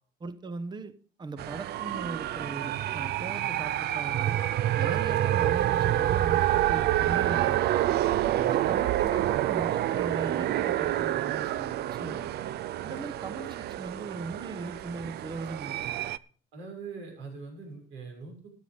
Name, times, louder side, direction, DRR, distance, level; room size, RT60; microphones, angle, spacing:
voice 1, 0.2-0.9 1.2-4.4 4.8-7.7 8.5-12.2 12.8-16.1, right 3 dB, 20° right, 1.0 m, -39 dB
sound 1, 1.4-16.2, right 13 dB, 55° right, 0.5 m, -28 dB
voice 2, 11.8-12.2 16.5-18.5, right 4 dB, 75° right, 6.2 m, -43 dB
13.5 x 9.9 x 5.1 m
cardioid pair, 145°, 20 cm